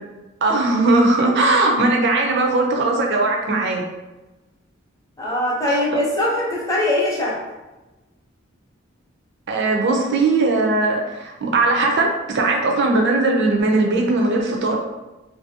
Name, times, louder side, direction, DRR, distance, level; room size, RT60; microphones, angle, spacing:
voice 1, 0.4-3.8 5.7-5.8 9.5-14.8, right 2 dB, 60° right, 1 dB, 0.5 m, -19 dB
voice 2, 5.2-7.4, left 1 dB, 15° left, -5 dB, 0.7 m, -21 dB
2.7 x 2.6 x 2.6 m, 1.1 s
head